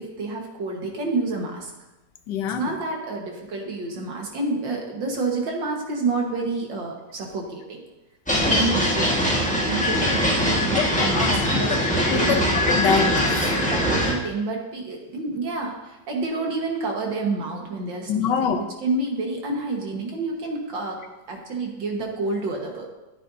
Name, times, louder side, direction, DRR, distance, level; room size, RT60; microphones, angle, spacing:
voice 1, 0.0-1.7 2.6-7.8 8.3-9.1 9.6-11.8 12.1-12.4 13.7-21.0 21.3-22.9, right 3 dB, 80° right, 0 dB, 2.3 m, -29 dB
voice 2, 2.3-2.7 8.3-8.7 10.7-11.4 11.7-11.8 12.1-13.6 18.1-18.7, left 7 dB, 75° left, 8 dB, 1.4 m, -26 dB
sound 1, 8.3-14.1, equal, 5° left, 1.4 m, -22 dB
14.0 x 8.8 x 2.8 m, 1.0 s
omnidirectional pair, 2.0 m